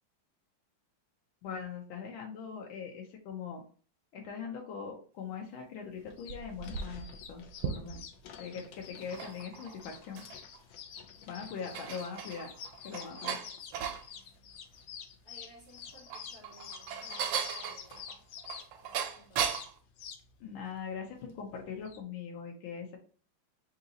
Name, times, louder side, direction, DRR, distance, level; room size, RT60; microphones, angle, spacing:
voice 1, 1.4-3.6 4.1-8.0 8.4-10.2 11.3-12.5 12.8-13.4 20.4-23.0, left 6 dB, 85° left, 1 dB, 1.6 m, -41 dB
sound 1, 6.0-22.0, left 7 dB, 70° left, 1.2 m, -49 dB
sound 2, 6.1-8.2 8.9-10.6 11.0-11.1 11.5-14.1 15.8-19.8, right 7 dB, 75° right, 1.3 m, -37 dB
voice 2, 13.4-13.8 14.1-14.5 15.2-18.1 18.8-19.7, equal, 50° left, -6 dB, 1.4 m, -59 dB
3.7 x 2.8 x 3.8 m, 0.42 s
omnidirectional pair, 2.2 m